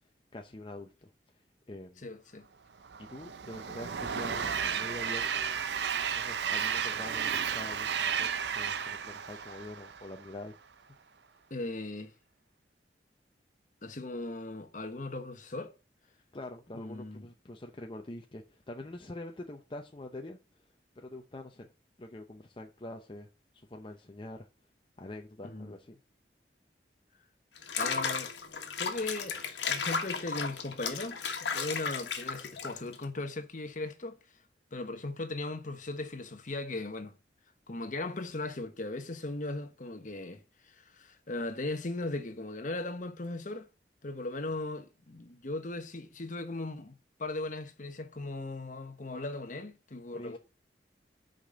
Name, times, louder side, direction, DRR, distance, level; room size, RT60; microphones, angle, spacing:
voice 1, 0.3-1.1 1.7-2.1 3.0-5.6 6.1-10.5 16.3-20.6 21.0-21.7 22.0-23.3 23.5-24.5 25.0-26.0 50.1-50.4, left 1 dB, 30° left, 0.7 m, -45 dB
voice 2, 2.0-2.5 11.5-12.1 13.8-15.7 16.7-17.2 25.4-25.7 27.8-28.3 28.8-29.4 29.7-34.2 34.7-37.2 37.7-43.7 44.0-46.9 47.2-50.4, left 2 dB, 45° left, 1.1 m, -38 dB
Train, 2.8-10.3, right 7 dB, 75° right, 0.6 m, -33 dB
Water / Bathtub (filling or washing), 27.6-33.0, left 5 dB, 85° left, 1.4 m, -35 dB
6.2 x 5.1 x 6.3 m
head